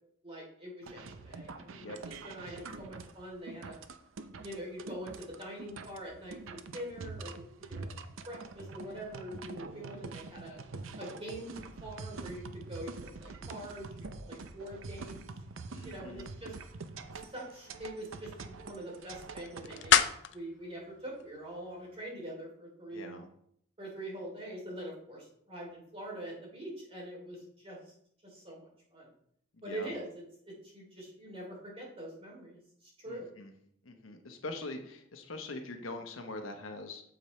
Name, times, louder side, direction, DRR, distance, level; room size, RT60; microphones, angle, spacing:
voice 1, 0.2-3.8 4.4-8.0 8.3-10.5 11.0-15.3 15.8-16.5 17.2-23.1 23.8-27.9 28.2-29.1 29.6-33.3, right 1 dB, 30° right, -3 dB, 3.2 m, -44 dB
sound 1, 0.8-20.0, right 3 dB, 75° right, 0.6 m, -45 dB
voice 2, 15.7-16.3 22.9-23.3 29.6-29.9 33.1-33.5 33.8-37.0, left 2 dB, 80° left, 5 dB, 1.1 m, -43 dB
sound 2, 17.0-22.1, left 9 dB, 60° left, 0.5 m, -33 dB
8.7 x 7.1 x 3.2 m, 0.68 s
head